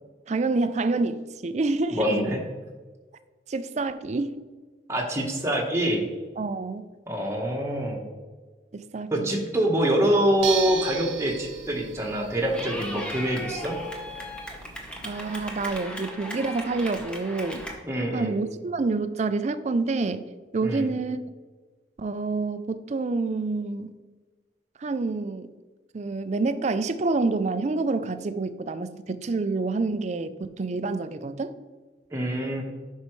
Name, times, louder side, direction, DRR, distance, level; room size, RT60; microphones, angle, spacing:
voice 1, 0.3-2.1 3.5-4.4 6.4-6.9 8.7-9.3 15.0-17.7 18.1-20.2 20.5-21.2 22.0-23.9 24.8-25.5 25.9-31.5, right 3 dB, 40° right, 12 dB, 0.4 m, -27 dB
voice 2, 1.9-2.4 4.9-6.0 7.1-8.1 9.1-13.7 17.8-18.4 20.6-20.9 32.1-32.6, right 1 dB, 15° right, -1 dB, 1.1 m, -25 dB
sound 1, 10.4-15.8, right 8 dB, 90° right, 0.8 m, -37 dB
Clapping / Cheering, 12.5-17.7, equal, 5° left, 0.9 m, -37 dB
8.2 x 5.5 x 3.1 m, 1.3 s
head